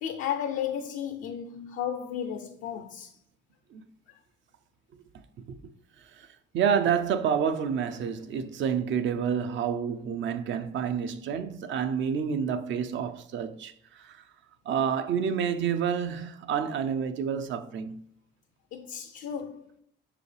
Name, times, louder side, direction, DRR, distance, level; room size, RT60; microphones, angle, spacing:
voice 1, 0.0-3.1 18.7-19.6, left 9 dB, 85° left, 0.5 m, -33 dB
voice 2, 6.5-14.2 14.7-18.0, right 7 dB, 70° right, 0.6 m, -29 dB
5.9 x 4.8 x 3.3 m
cardioid pair, 90°, 20 cm